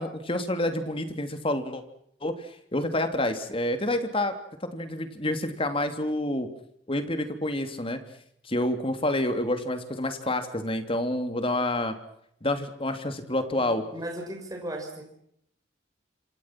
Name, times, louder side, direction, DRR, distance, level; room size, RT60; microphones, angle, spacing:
voice 1, 0.0-1.8 2.2-2.3 2.7-4.3 4.6-6.5 6.9-8.0 8.5-12.0 12.4-13.8, left 1 dB, 30° left, 8 dB, 3.1 m, -28 dB
voice 2, 13.6-15.0, right 1 dB, 20° right, 2 dB, 5.8 m, -36 dB
27.5 x 26.0 x 6.1 m, 0.71 s
head